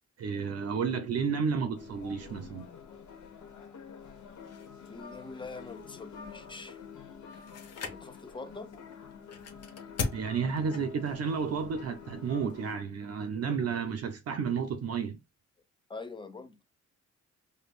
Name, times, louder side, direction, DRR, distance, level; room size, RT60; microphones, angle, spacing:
voice 1, 0.2-2.7 10.1-15.2, right 6 dB, 55° right, 0.6 m, -31 dB
sound 1, 1.7-12.7, left 6 dB, 70° left, 1.2 m, -48 dB
sound 2, 4.4-12.8, left 4 dB, 55° left, 0.9 m, -43 dB
voice 2, 4.9-6.8 7.8-8.7 13.4-13.7 15.9-16.6, left 3 dB, 15° left, 0.4 m, -44 dB
5.1 x 2.2 x 2.4 m
wide cardioid pair, 150°, 30 cm